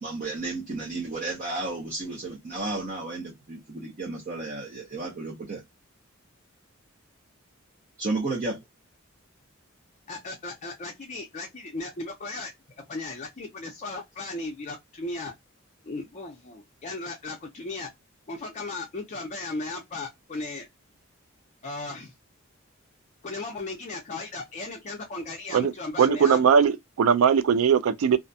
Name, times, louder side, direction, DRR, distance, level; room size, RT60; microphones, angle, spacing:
voice 1, 0.0-5.6 8.0-8.6, right 3 dB, 40° right, 0.7 m, -32 dB
voice 2, 10.1-12.5 12.8-15.3 15.8-17.9 18.3-20.7 21.6-22.1 23.2-26.4, left 2 dB, 35° left, 0.5 m, -36 dB
voice 3, 26.0-28.2, right 7 dB, 90° right, 0.4 m, -20 dB
2.5 x 2.1 x 2.5 m
head